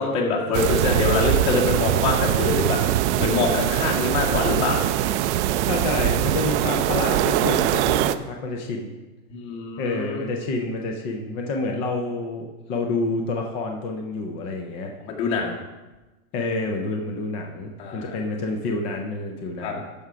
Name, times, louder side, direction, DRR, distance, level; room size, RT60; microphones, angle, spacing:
voice 1, 0.0-2.8 3.2-4.8 9.3-10.2 15.0-15.5 17.8-18.2 19.6-19.7, left 4 dB, 55° left, -2 dB, 2.4 m, -24 dB
sound 1, 0.5-8.2, right 12 dB, 50° right, 0.5 m, -22 dB
voice 2, 5.6-8.9 9.8-14.9 16.3-19.8, left 3 dB, 20° left, 2 dB, 0.3 m, -28 dB
12.0 x 4.7 x 4.9 m, 1.1 s
supercardioid pair, 145°, 44 cm